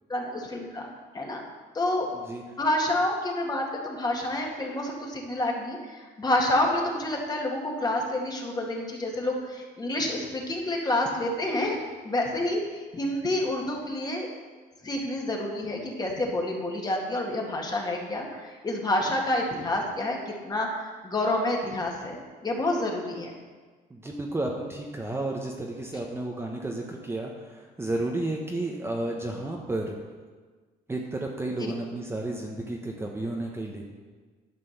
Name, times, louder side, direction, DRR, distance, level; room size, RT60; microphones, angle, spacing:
voice 1, 0.1-0.9 1.1-1.4 1.7-2.1 2.6-11.8 12.0-14.3 14.8-23.3 25.9-26.0 31.6-31.8, left 1 dB, 25° left, 0 dB, 2.0 m, -28 dB
voice 2, 23.9-30.0 30.9-33.8, right 2 dB, 15° right, -1 dB, 1.1 m, -32 dB
11.5 x 6.0 x 5.9 m, 1.4 s
cardioid pair, 110°, 17 cm